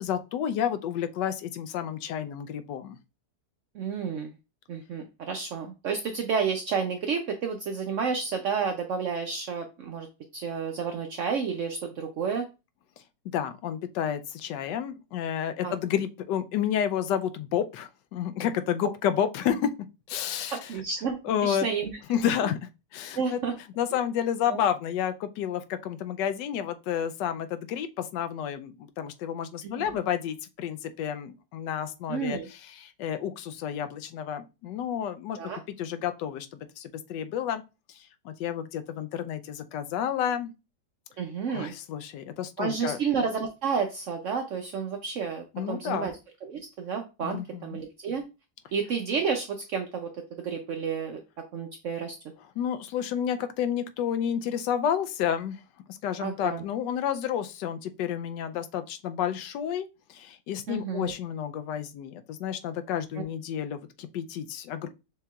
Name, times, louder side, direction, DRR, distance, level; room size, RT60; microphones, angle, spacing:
voice 1, 0.0-3.0 13.3-19.7 20.1-20.7 21.2-21.7 22.1-23.4 23.8-35.4 35.8-37.6 37.9-40.5 41.5-43.0 45.5-46.1 47.2-47.8 52.6-55.6 55.9-64.9, left 9 dB, 85° left, 1.2 m, -30 dB
voice 2, 3.7-4.3 4.7-10.1 10.3-12.5 15.6-15.7 20.5-21.9 23.1-23.5 24.5-24.6 29.6-30.0 32.1-32.5 35.4-35.6 41.2-41.7 42.6-46.1 46.4-48.2 48.7-50.1 50.4-51.2 51.5-52.1 56.2-56.6 60.7-61.1, right 6 dB, 75° right, 0.7 m, -31 dB
6.5 x 2.9 x 2.3 m
omnidirectional pair, 1.8 m